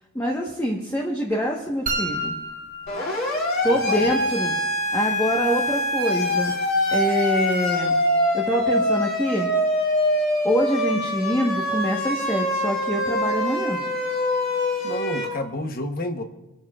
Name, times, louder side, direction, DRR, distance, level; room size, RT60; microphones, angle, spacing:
voice 1, 0.1-2.3 3.6-4.5 4.9-6.5 6.9-8.0 8.3-9.5 10.4-13.8, equal, 10° left, -2 dB, 1.2 m, -25 dB
sound 1, 1.9-3.9, right 1 dB, 35° right, 1.1 m, -31 dB
Siren, 2.9-15.2, left 1 dB, 60° left, 4.1 m, -24 dB
voice 2, 3.7-4.3 14.8-16.2, left 1 dB, 40° left, 7 dB, 1.0 m, -30 dB
27.0 x 11.5 x 2.4 m, 0.99 s
head